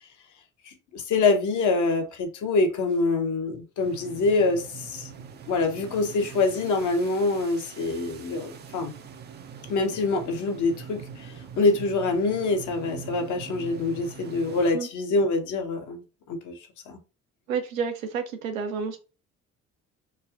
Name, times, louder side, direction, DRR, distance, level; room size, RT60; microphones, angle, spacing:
voice 1, 0.7-5.1 5.5-8.9 9.7-16.0 16.3-16.6 16.9-17.0, left 3 dB, 50° left, 0.8 m, -25 dB
sound 1, 3.8-14.7, right 7 dB, 30° right, 0.4 m, -43 dB
voice 2, 17.5-19.0, right 6 dB, 85° right, 0.5 m, -30 dB
3.2 x 2.2 x 2.4 m
figure-of-eight pair, 50°, 40 cm